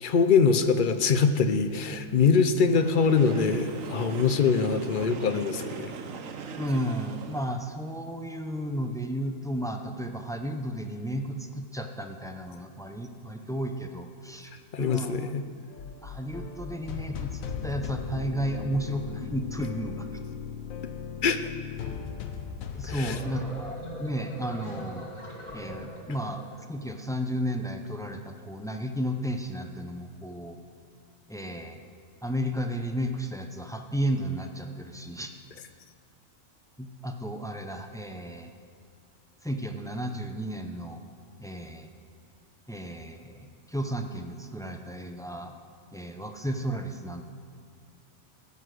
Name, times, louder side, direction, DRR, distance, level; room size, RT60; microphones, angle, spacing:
voice 1, 0.0-5.9 14.7-15.4 21.2-21.4 22.9-23.2, left 5 dB, 50° left, 9 dB, 0.6 m, -23 dB
Train, 2.7-7.7, right 5 dB, 75° right, 1.2 m, -40 dB
voice 2, 6.6-14.5 14.8-15.3 16.0-20.1 22.7-25.1 25.5-26.4 26.7-30.6 31.3-31.8 32.2-35.3 36.8-38.5 39.4-41.0 41.4-41.9 42.7-43.4 43.7-45.5 45.9-47.2, equal, 5° left, 5 dB, 0.3 m, -33 dB
sound 1, 15.7-23.6, left 7 dB, 85° left, 1.2 m, -37 dB
sound 2, 22.7-26.6, equal, 30° left, 2.6 m, -40 dB
16.0 x 8.1 x 6.3 m, 2.2 s
omnidirectional pair, 1.4 m